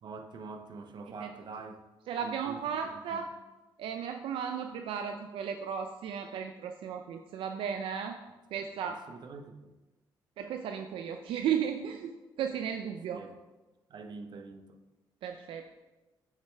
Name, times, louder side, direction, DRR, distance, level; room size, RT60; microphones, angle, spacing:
voice 1, 0.0-1.8 2.2-3.2 8.6-9.8 13.1-13.4 13.9-14.8, right 4 dB, 55° right, 6 dB, 0.8 m, -46 dB
voice 2, 2.1-3.2 3.8-8.2 8.5-9.0 10.4-13.2 15.2-15.7, right 8 dB, 80° right, 5 dB, 0.5 m, -35 dB
7.4 x 6.5 x 3.4 m, 1.1 s
cardioid pair, 80°, 9 cm